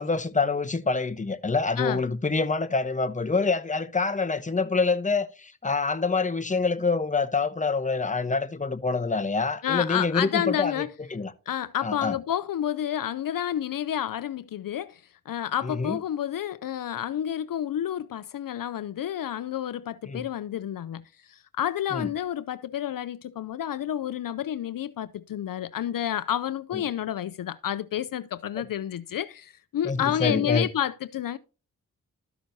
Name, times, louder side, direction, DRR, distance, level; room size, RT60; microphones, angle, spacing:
voice 1, 0.0-10.7 11.1-11.3 11.8-12.1 15.6-16.0 20.1-20.2 21.9-22.1 26.7-26.8 29.8-30.7, left 4 dB, 20° left, 0.9 m, -26 dB
voice 2, 9.6-10.9 11.5-31.4, left 10 dB, 70° left, 0.5 m, -30 dB
13.0 x 6.1 x 2.7 m
cardioid pair, 50°, 35 cm